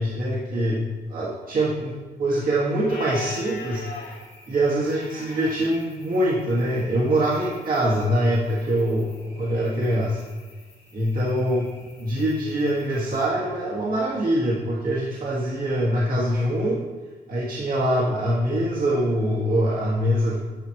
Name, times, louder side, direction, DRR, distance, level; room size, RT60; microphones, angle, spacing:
voice 1, 0.0-1.9 2.2-4.2 4.5-10.2 10.9-11.6 12.0-16.8 17.3-20.4, right 1 dB, 55° right, -7 dB, 1.9 m, -24 dB
sound 1, 2.9-13.3, left 2 dB, 65° left, 2.6 m, -43 dB
11.0 x 5.2 x 3.1 m, 1.3 s
cardioid pair, 105°, 18 cm